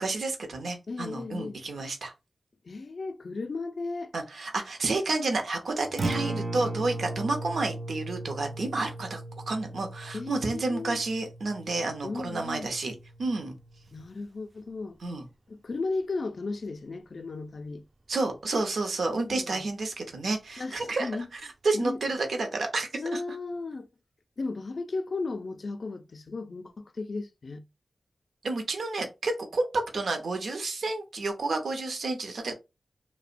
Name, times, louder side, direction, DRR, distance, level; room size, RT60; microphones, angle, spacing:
voice 1, 0.0-2.1 4.1-9.2 9.5-13.6 15.0-15.3 18.1-21.1 21.6-23.2 28.4-32.5, right 3 dB, 70° right, 0.6 m, -30 dB
voice 2, 0.9-1.6 2.6-4.1 10.1-11.0 12.0-12.7 13.9-15.0 15.5-17.8 19.3-19.6 20.6-21.3 21.7-22.0 23.0-23.9 24.4-27.6, left 3 dB, 50° left, 0.3 m, -35 dB
Acoustic guitar, 5.8-14.0, right 2 dB, 35° right, 0.3 m, -37 dB
2.7 x 2.0 x 2.4 m
wide cardioid pair, 105°, 0 cm